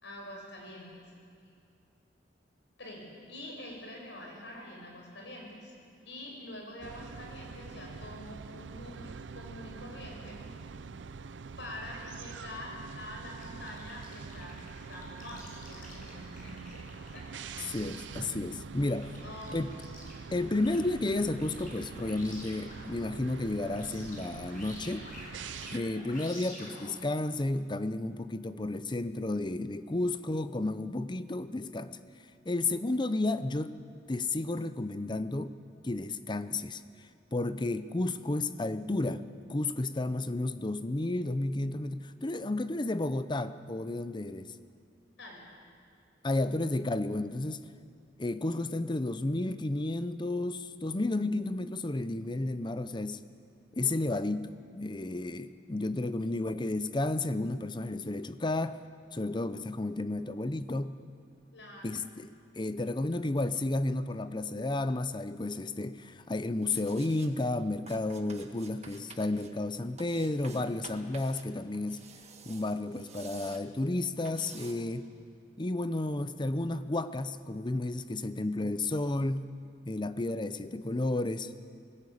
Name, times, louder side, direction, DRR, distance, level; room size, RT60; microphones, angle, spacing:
voice 1, 0.0-1.0 2.8-5.7 6.0-10.4 11.6-16.8 17.1-17.7 19.2-19.6 45.2-45.5 56.2-56.4 61.5-62.0, left 1 dB, 85° left, 0 dB, 6.1 m, -46 dB
sound 1, 6.8-25.8, right 5 dB, 85° right, 0.5 m, -45 dB
sound 2, 13.4-22.9 23.2-27.0, left 1 dB, 50° left, 6.2 m, -50 dB
voice 2, 17.7-19.1 19.5-19.7 20.3-25.1 25.7-32.0 32.5-33.8 34.1-35.5 35.8-36.8 37.3-39.2 39.5-44.5 46.2-47.6 48.2-53.2 53.7-58.8 59.1-61.0 61.8-72.0 72.5-75.1 75.6-79.5 79.8-81.5, left 2 dB, 25° left, 12 dB, 0.7 m, -32 dB
sound 3, 66.6-67.3 67.9-69.5 70.0-71.4 71.7-73.6 74.3-74.7, right 5 dB, 40° right, 1.6 m, -51 dB
20.0 x 16.5 x 8.5 m, 2.3 s
head